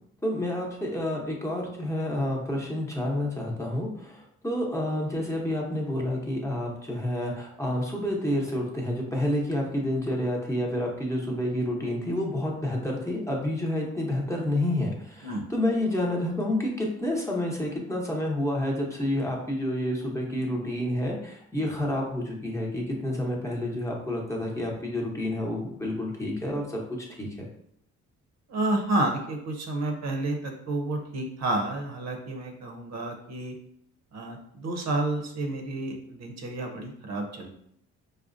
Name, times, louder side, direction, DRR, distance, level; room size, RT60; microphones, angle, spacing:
voice 1, 0.2-27.3, left 1 dB, 10° left, -2 dB, 0.8 m, -29 dB
voice 2, 28.5-33.5 34.1-37.5, right 2 dB, 60° right, 3 dB, 0.7 m, -30 dB
4.8 x 2.1 x 2.5 m, 0.70 s
cardioid pair, 90°, 30 cm